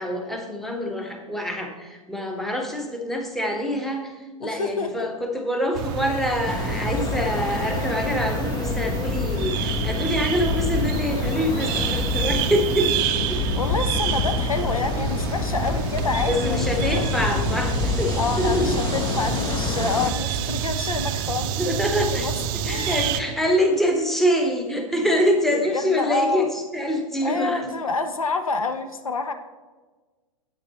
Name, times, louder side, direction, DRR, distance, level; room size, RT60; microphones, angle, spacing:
voice 1, 0.0-13.4 16.3-18.9 21.6-27.7, equal, ahead, 3 dB, 1.0 m, -25 dB
voice 2, 4.4-5.1 13.3-16.7 18.2-22.3 22.7-23.0 25.5-26.5 27.2-29.3, left 3 dB, 80° left, 8 dB, 0.7 m, -28 dB
sound 1, 5.7-23.2, right 9 dB, 40° right, 0.5 m, -28 dB
sound 2, 6.5-20.1, left 5 dB, 20° left, 0.6 m, -27 dB
8.7 x 8.4 x 3.0 m, 1.3 s
figure-of-eight pair, 100°, 18 cm